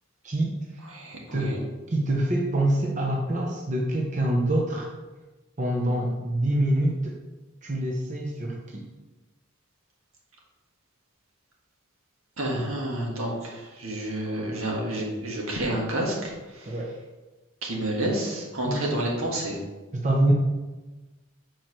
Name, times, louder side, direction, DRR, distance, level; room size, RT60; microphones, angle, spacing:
voice 1, 0.2-0.5 1.3-1.6 1.9-4.9 5.6-7.2 7.6-8.8 16.7-16.9 18.7-18.9 19.9-20.3, right 1 dB, 35° right, -2 dB, 0.8 m, -25 dB
voice 2, 0.9-1.6 12.4-16.8 17.6-19.6, right 1 dB, 80° right, -2 dB, 1.7 m, -29 dB
4.8 x 4.6 x 5.9 m, 1.2 s
head